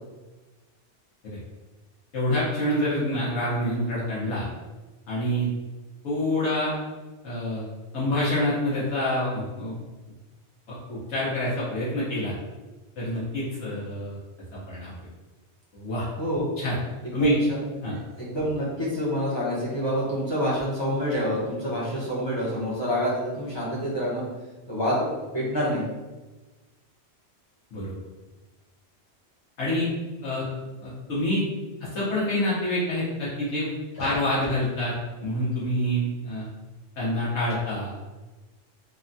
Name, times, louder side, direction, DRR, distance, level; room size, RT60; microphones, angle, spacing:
voice 1, 2.1-4.5 5.1-5.5 6.0-6.7 7.2-7.6 7.9-9.7 10.7-12.3 13.0-14.2 14.7-14.9 15.7-16.1 16.6-16.8 17.1-17.4 17.8-18.0 27.7-28.0 29.6-29.9 30.2-30.4 30.8-31.4 31.9-33.7 34.0-34.9 35.2-36.5 37.0-37.9, left 1 dB, 85° left, -8 dB, 1.1 m, -27 dB
voice 2, 16.2-16.5 17.0-17.6 17.9-24.2 24.7-25.9 34.0-34.1, equal, 30° left, -7 dB, 0.7 m, -27 dB
3.2 x 2.1 x 2.5 m, 1.2 s
omnidirectional pair, 1.1 m